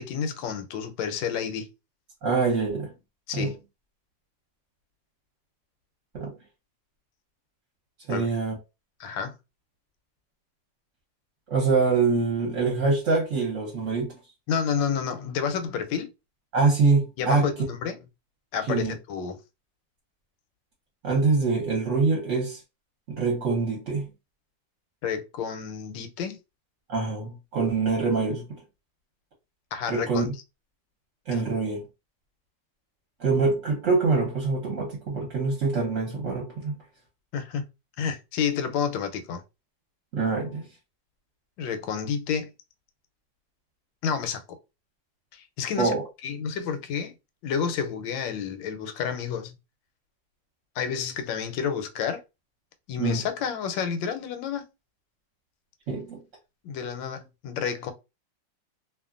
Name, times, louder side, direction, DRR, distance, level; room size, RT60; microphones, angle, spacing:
voice 1, 0.0-1.7 3.3-3.6 8.1-8.3 9.0-9.3 14.5-16.1 17.2-18.0 18.5-19.4 25.0-26.4 29.7-30.3 31.3-31.4 37.3-37.6 38.0-39.4 41.6-42.5 44.0-44.4 45.3-45.9 46.2-47.1 47.4-49.6 50.8-52.2 52.9-54.7 56.6-57.9, left 7 dB, 85° left, 1.3 m, -30 dB
voice 2, 2.2-3.0 3.3-3.6 6.1-6.4 8.1-8.6 11.5-14.1 16.5-17.5 18.7-18.9 21.0-22.6 23.1-24.0 26.9-28.6 29.9-30.3 31.3-31.8 33.2-36.8 40.1-40.7 45.8-46.0 53.0-53.2 55.9-56.2, right 4 dB, 50° right, 1.1 m, -25 dB
2.8 x 2.4 x 2.4 m
omnidirectional pair, 2.0 m